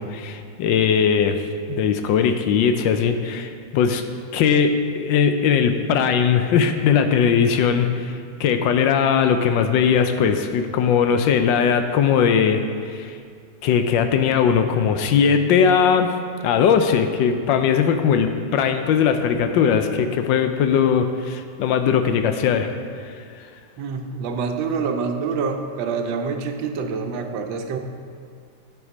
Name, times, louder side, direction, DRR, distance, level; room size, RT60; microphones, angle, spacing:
voice 1, 0.0-1.4 1.7-4.0 4.3-8.1 8.4-12.6 12.9-13.1 13.6-16.1 16.4-22.7, left 7 dB, 80° left, 8 dB, 1.3 m, -19 dB
voice 2, 23.8-27.8, right 5 dB, 80° right, 5 dB, 1.4 m, -26 dB
9.2 x 6.2 x 5.0 m, 2.2 s
omnidirectional pair, 2.1 m